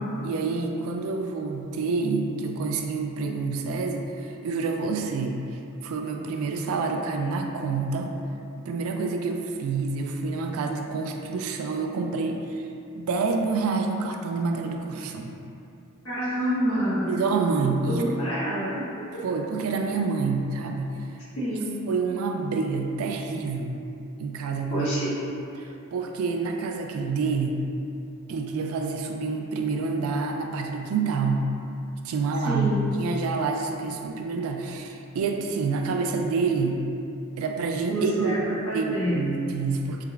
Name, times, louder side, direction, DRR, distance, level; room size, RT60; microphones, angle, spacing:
voice 1, 0.2-5.4 5.8-8.1 8.6-12.7 12.9-15.4 17.1-18.1 19.2-21.0 21.9-23.8 24.2-25.2 25.6-27.6 28.3-31.5 32.0-36.8 37.4-40.1, right 4 dB, 70° right, 3 dB, 0.3 m, -27 dB
voice 2, 16.0-17.1 17.9-18.8 21.4-21.8 24.7-25.1 32.4-32.8 37.9-39.2, equal, 70° left, -11 dB, 1.3 m, -27 dB
4.7 x 2.3 x 2.2 m, 2.6 s
head